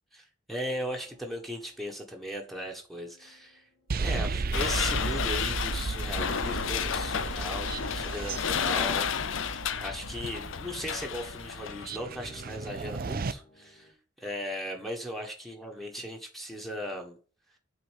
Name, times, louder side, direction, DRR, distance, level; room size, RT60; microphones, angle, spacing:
voice 1, 0.1-3.7 4.0-13.9 14.2-17.2, equal, ahead, 0 dB, 1.5 m, -38 dB
sound 1, 0.5-13.9, left 1 dB, 40° left, 3.6 m, -55 dB
sound 2, 3.9-13.3, right 4 dB, 50° right, 0.6 m, -35 dB
sound 3, 4.5-11.9, left 7 dB, 75° left, 0.6 m, -32 dB
8.0 x 4.3 x 6.5 m, 0.39 s
head